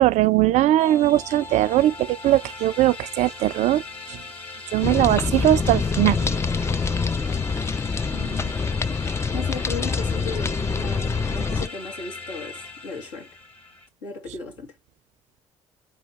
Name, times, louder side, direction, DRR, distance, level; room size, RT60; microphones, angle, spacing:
voice 1, 0.0-3.8 4.1-4.2 4.7-6.2, right 14 dB, 50° right, 0.4 m, -20 dB
sound 1, 0.8-13.9, left 3 dB, 40° left, 1.7 m, -39 dB
sound 2, 4.8-11.7, left 4 dB, 15° left, 0.4 m, -25 dB
voice 2, 8.1-8.6 8.9-9.0 9.3-13.3 14.0-14.7, left 4 dB, 75° left, 1.6 m, -36 dB
4.4 x 3.0 x 3.8 m
figure-of-eight pair, 45°, 15 cm